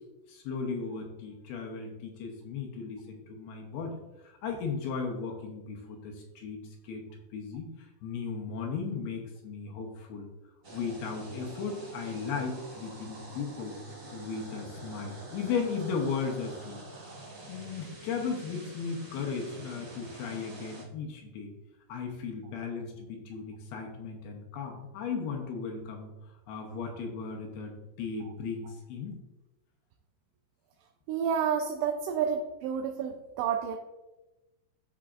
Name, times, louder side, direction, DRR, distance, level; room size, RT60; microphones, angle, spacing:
voice 1, 0.3-10.3 10.7-13.8 14.1-16.8 17.5-21.5 21.9-29.2, left 5 dB, 75° left, 1 dB, 2.8 m, -36 dB
sound 1, 10.6-20.8, right 2 dB, 45° right, 1.0 m, -46 dB
voice 2, 31.1-33.8, right 7 dB, 90° right, 3 dB, 2.8 m, -30 dB
13.0 x 5.8 x 2.5 m, 1.1 s
omnidirectional pair, 4.8 m